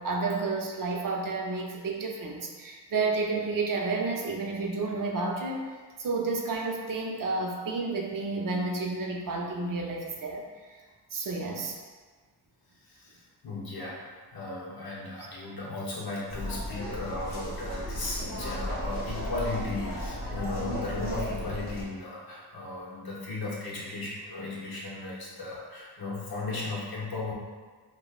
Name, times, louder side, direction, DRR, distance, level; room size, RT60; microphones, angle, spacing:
voice 1, 0.0-5.7 6.0-10.8 11.1-11.8, right 3 dB, 55° right, 0 dB, 0.6 m, -31 dB
voice 2, 12.8-27.3, left 2 dB, 65° left, -5 dB, 1.0 m, -36 dB
sound 1, 16.3-21.8, equal, 40° left, 1.1 m, -35 dB
5.0 x 2.2 x 2.4 m, 1.4 s
wide cardioid pair, 105°, 40 cm